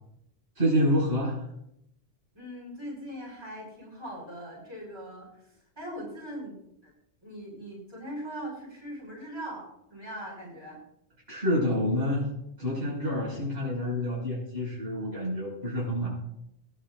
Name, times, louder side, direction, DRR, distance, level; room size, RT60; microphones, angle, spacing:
voice 1, 0.6-1.4 11.3-12.3 12.6-16.1, equal, 65° right, -5 dB, 6.1 m, -27 dB
voice 2, 2.3-5.3 5.8-6.5 6.8-6.9 7.2-10.8, equal, 25° right, -5 dB, 6.2 m, -40 dB
21.5 x 11.5 x 2.5 m, 0.80 s
omnidirectional pair, 1.2 m